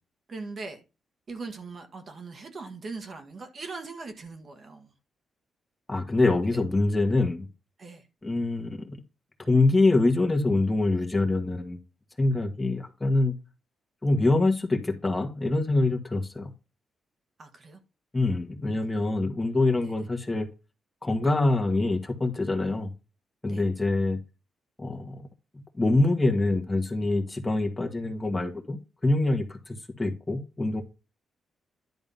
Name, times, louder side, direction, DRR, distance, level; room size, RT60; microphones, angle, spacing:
voice 1, 0.3-0.8 1.3-4.9 7.8-8.1 17.4-17.8 18.8-18.9 19.8-19.9 23.5-23.7, right 3 dB, 40° right, 1.5 m, -40 dB
voice 2, 5.9-7.5 8.2-8.9 9.4-11.8 12.2-13.3 14.0-16.5 18.1-20.5 21.0-22.9 23.4-24.2 24.8-25.3 25.8-30.8, left 2 dB, 15° left, 1.7 m, -25 dB
11.0 x 3.7 x 5.4 m
cardioid pair, 125°, 0 cm